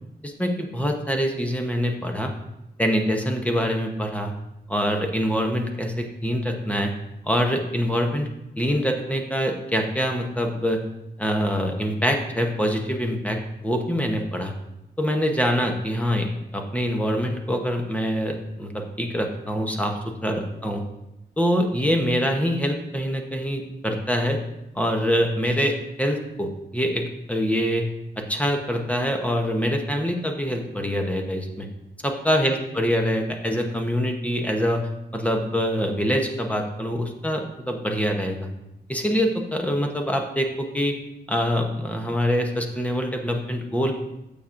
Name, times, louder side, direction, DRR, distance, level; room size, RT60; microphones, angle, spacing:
voice 1, 0.2-2.3 2.8-4.3 4.7-6.9 7.2-8.3 8.6-10.8 11.2-14.5 15.0-20.8 21.4-24.4 24.7-27.9 28.2-31.7 32.0-38.5 38.9-41.0 41.3-43.9, equal, 10° left, 2 dB, 0.9 m, -25 dB
13.5 x 7.1 x 2.5 m, 0.88 s
wide cardioid pair, 170°, 18 cm